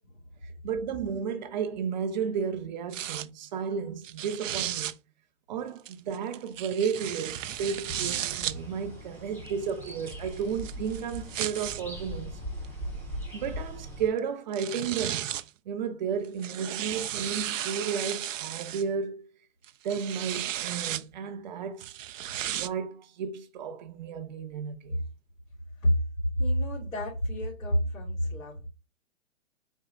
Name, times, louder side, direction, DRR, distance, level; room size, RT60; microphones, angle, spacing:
voice 1, 0.6-4.9 5.5-12.4 13.3-15.3 15.7-19.3 19.8-21.9 22.5-25.0, right 6 dB, 35° right, 0.7 m, -33 dB
sound 1, 2.9-3.3 4.0-4.9 5.9-8.6 9.5-11.8 12.6-12.7 14.2-14.3 14.5-15.5 16.2-18.8 19.6-21.0 21.8-22.7, right 12 dB, 70° right, 0.5 m, -34 dB
sound 2, 7.3-14.1, equal, 5° left, 0.9 m, -40 dB
voice 2, 26.4-28.7, equal, 75° left, 2.8 m, -28 dB
4.6 x 2.9 x 3.6 m
hypercardioid pair, 140°, 40 cm